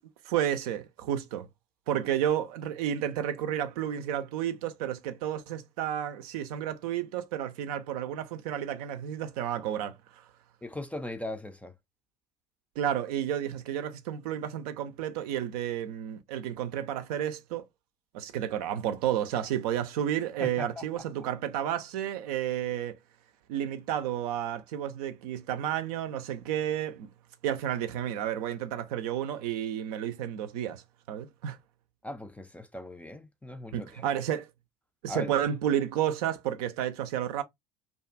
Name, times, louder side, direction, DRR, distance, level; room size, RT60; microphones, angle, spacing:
voice 1, 0.2-1.5 1.9-10.2 12.8-17.6 18.1-23.0 23.5-27.1 27.4-30.8 31.1-31.6 33.7-34.4 35.0-37.4, right 10 dB, 65° right, 0.5 m, -31 dB
voice 2, 10.6-11.7 20.4-21.0 32.0-34.1 35.1-35.4, left 1 dB, 5° left, 0.4 m, -39 dB
2.6 x 2.3 x 2.5 m
figure-of-eight pair, 65°, 21 cm